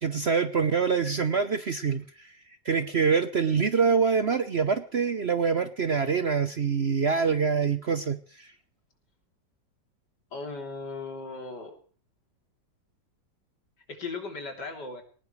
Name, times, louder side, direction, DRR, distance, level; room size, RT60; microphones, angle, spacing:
voice 1, 0.0-2.3 2.6-8.5, right 5 dB, 50° right, 10 dB, 0.9 m, -25 dB
voice 2, 10.3-11.8 13.9-15.0, left 3 dB, 70° left, 3 dB, 3.9 m, -37 dB
20.5 x 19.0 x 3.2 m, 0.42 s
omnidirectional pair, 1.9 m